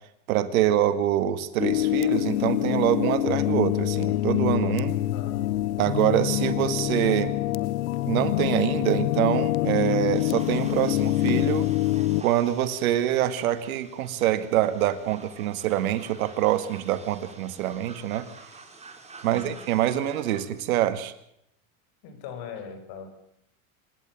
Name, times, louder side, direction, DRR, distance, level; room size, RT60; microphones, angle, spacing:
voice 1, 0.3-4.9 5.8-7.3 8.1-11.7 12.2-18.3 19.2-21.1, right 12 dB, 85° right, 11 dB, 2.0 m, -25 dB
sound 1, 1.6-12.2, left 15 dB, 80° left, 0.9 m, -25 dB
voice 2, 5.1-5.4 19.2-19.5 22.0-23.1, left 6 dB, 60° left, 8 dB, 5.3 m, -41 dB
sound 2, 10.1-20.4, right 4 dB, 15° right, 3.4 m, -48 dB
25.5 x 11.5 x 9.1 m, 0.74 s
supercardioid pair, 120°, 41 cm